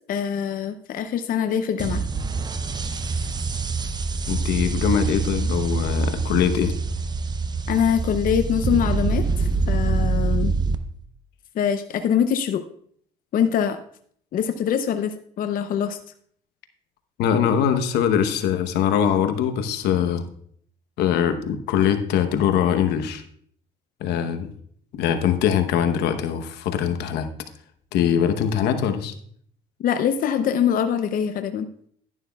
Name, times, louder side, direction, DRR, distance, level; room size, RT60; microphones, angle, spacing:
voice 1, 0.1-2.0 7.7-10.5 11.6-12.6 13.3-13.8 14.3-16.0 29.8-31.7, left 8 dB, 55° left, 8 dB, 0.6 m, -23 dB
sound 1, 1.8-10.8, right 4 dB, 25° right, 0.6 m, -25 dB
voice 2, 4.3-6.7 17.2-20.2 21.0-23.2 24.0-24.5 24.9-27.3 27.9-29.1, left 8 dB, 85° left, 8 dB, 1.0 m, -22 dB
11.5 x 11.0 x 2.3 m, 0.62 s
cardioid pair, 110°, 17 cm